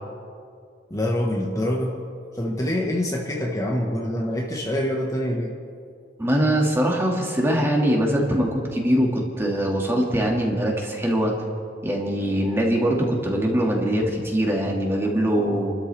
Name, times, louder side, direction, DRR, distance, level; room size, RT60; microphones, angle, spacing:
voice 1, 0.9-2.0 2.3-5.5, left 1 dB, 20° left, -1 dB, 1.5 m, -25 dB
voice 2, 6.2-11.3 11.8-15.8, equal, 15° right, -1 dB, 2.3 m, -22 dB
29.0 x 13.0 x 3.5 m, 2.3 s
head